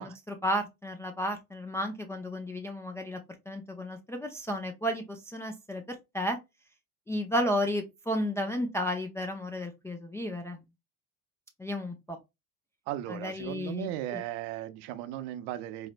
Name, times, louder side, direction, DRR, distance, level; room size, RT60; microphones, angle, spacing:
voice 1, 0.0-3.2 3.5-6.4 7.1-10.6 11.6-12.2 13.1-14.2, equal, 5° left, 0.3 m, -33 dB
voice 2, 12.9-15.9, right 12 dB, 65° right, 0.6 m, -36 dB
4.1 x 2.0 x 2.5 m
hypercardioid pair, 85°, 42 cm